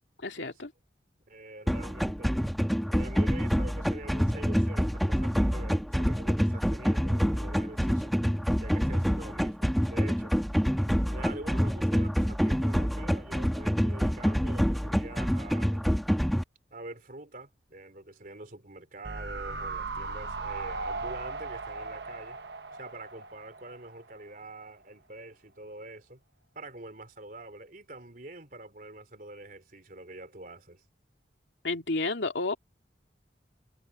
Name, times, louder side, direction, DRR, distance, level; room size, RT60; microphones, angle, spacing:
voice 1, 0.2-0.7 31.6-32.6, left 3 dB, 85° left, 2.6 m, -31 dB
voice 2, 1.3-2.5 2.9-8.2 8.6-10.4 11.1-15.9 16.7-22.4 22.7-26.2 26.5-30.8, right 2 dB, 50° right, 3.6 m, -45 dB
sound 1, 1.7-16.4, equal, ahead, 1.2 m, -27 dB
sound 2, 19.0-24.3 24.6-24.7, right 3 dB, 70° right, 1.1 m, -38 dB
head